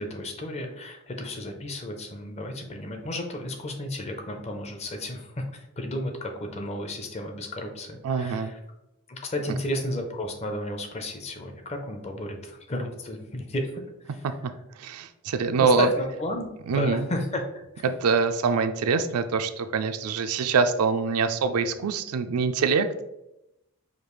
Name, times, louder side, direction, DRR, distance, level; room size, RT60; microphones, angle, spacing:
voice 1, 0.0-8.6 9.1-13.7 14.1-14.2 15.6-17.4 17.7-17.8, left 1 dB, 30° left, 4 dB, 0.5 m, -33 dB
voice 2, 8.0-8.5 14.8-15.9 16.7-17.0 17.8-23.0, right 5 dB, 80° right, 9 dB, 0.4 m, -24 dB
5.0 x 2.4 x 3.1 m, 0.88 s
head